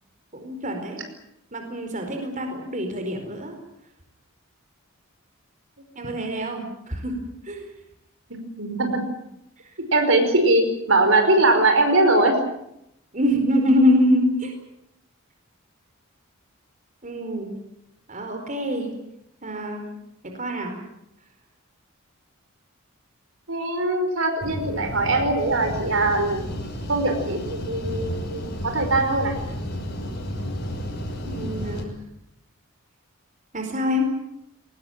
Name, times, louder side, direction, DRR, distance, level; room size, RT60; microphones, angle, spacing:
voice 1, 0.3-1.0 1.5-3.5 6.0-7.1 7.4-7.7 13.1-14.5 17.0-17.5 18.1-18.9 19.4-19.9 20.4-20.8 31.2-31.9 33.5-34.1, left 1 dB, 35° right, 4 dB, 4.6 m, -24 dB
voice 2, 8.3-9.0 9.9-12.4 23.5-26.4 26.9-29.4, right 2 dB, 65° right, 6 dB, 5.2 m, -21 dB
sound 1, 24.4-31.8, equal, 50° left, 5.9 m, -32 dB
22.0 x 20.5 x 9.2 m, 0.80 s
head